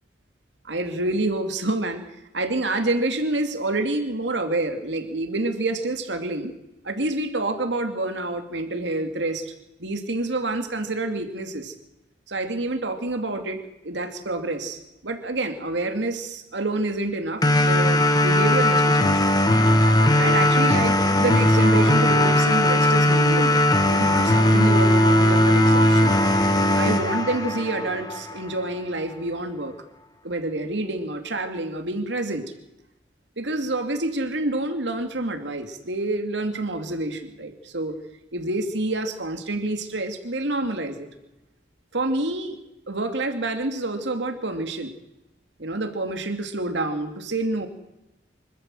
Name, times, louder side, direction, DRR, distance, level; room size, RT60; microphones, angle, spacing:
voice 1, 0.6-2.0 2.3-6.5 6.8-9.5 9.8-11.7 12.3-13.6 13.8-19.2 20.2-26.1 26.7-29.8 30.2-32.5 33.4-38.0 38.3-41.1 41.9-42.6 42.9-44.9 45.6-47.7, right 2 dB, 85° right, 6 dB, 2.4 m, -27 dB
sound 1, 17.4-28.4, left 1 dB, 20° left, 1.4 m, -18 dB
25.5 x 13.5 x 7.7 m, 0.94 s
head